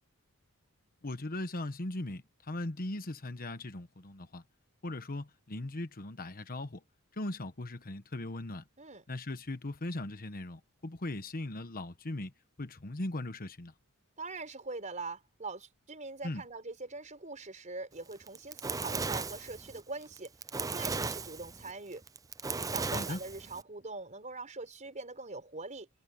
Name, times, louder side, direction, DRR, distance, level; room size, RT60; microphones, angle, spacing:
voice 1, 1.0-4.4 4.8-6.8 7.1-8.7 9.1-12.3 12.6-13.7 16.2-16.4 22.9-23.2, left 2 dB, 45° left, 1.2 m, -39 dB
voice 2, 14.2-20.3 20.6-22.0 22.5-25.9, right 3 dB, 35° right, 4.5 m, -43 dB
Fire, 18.1-23.6, right 4 dB, 15° right, 0.5 m, -36 dB
head